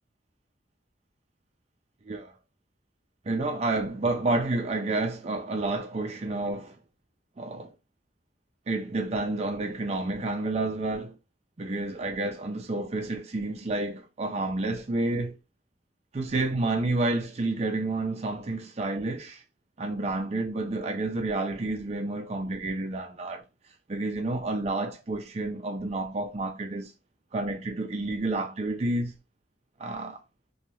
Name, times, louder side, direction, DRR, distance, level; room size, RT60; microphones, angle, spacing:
voice 1, 3.3-6.8 7.4-7.7 8.7-11.1 11.6-15.4 16.1-19.4 19.8-23.4 23.9-26.9 27.3-29.1 29.8-30.2, right 2 dB, 35° right, 0.5 m, -30 dB
2.8 x 2.2 x 3.0 m
head